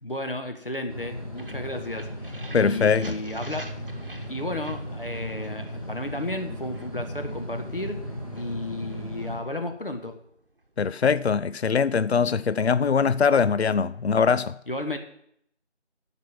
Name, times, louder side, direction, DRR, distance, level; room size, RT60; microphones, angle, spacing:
voice 1, 0.0-3.7 4.3-8.0 8.3-10.2 14.7-15.0, left 1 dB, 50° left, 1.5 m, -33 dB
sound 1, 0.9-9.4, equal, 30° left, 1.7 m, -36 dB
sound 2, 1.4-11.2, right 1 dB, 50° right, 1.1 m, -48 dB
voice 2, 2.5-3.1 10.8-14.6, left 6 dB, 65° left, 0.5 m, -22 dB
13.5 x 5.3 x 7.2 m
figure-of-eight pair, 175°, 35 cm